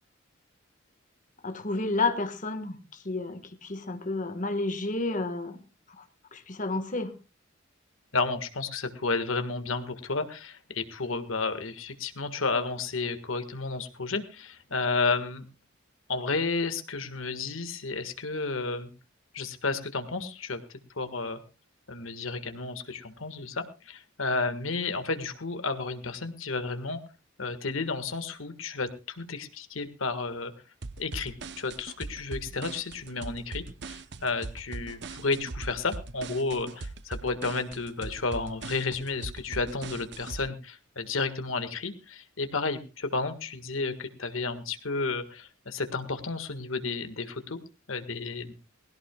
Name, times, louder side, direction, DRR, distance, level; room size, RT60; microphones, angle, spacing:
voice 1, 1.4-2.8 3.0-5.6 6.0-6.1 6.3-7.1, left 3 dB, 40° left, 1.5 m, -30 dB
voice 2, 8.1-15.4 16.1-18.9 19.3-20.6 21.0-21.4 21.9-27.0 27.4-30.5 31.0-47.6 47.9-48.5, left 3 dB, 85° left, 1.7 m, -32 dB
sound 1, 30.8-40.4, right 3 dB, 60° right, 0.8 m, -40 dB
20.0 x 17.0 x 2.3 m
head